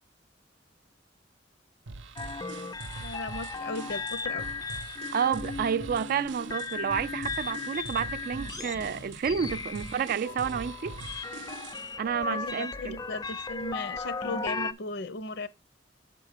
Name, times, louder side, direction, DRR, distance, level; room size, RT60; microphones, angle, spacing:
sound 1, 1.9-11.9, right 3 dB, 90° right, 0.7 m, -43 dB
sound 2, 2.2-14.7, left 4 dB, 20° left, 0.4 m, -37 dB
voice 1, 3.0-4.5 12.1-15.5, left 2 dB, 65° left, 0.7 m, -37 dB
voice 2, 5.1-11.0 12.0-13.0, right 7 dB, 50° right, 0.3 m, -30 dB
7.3 x 3.8 x 6.5 m
head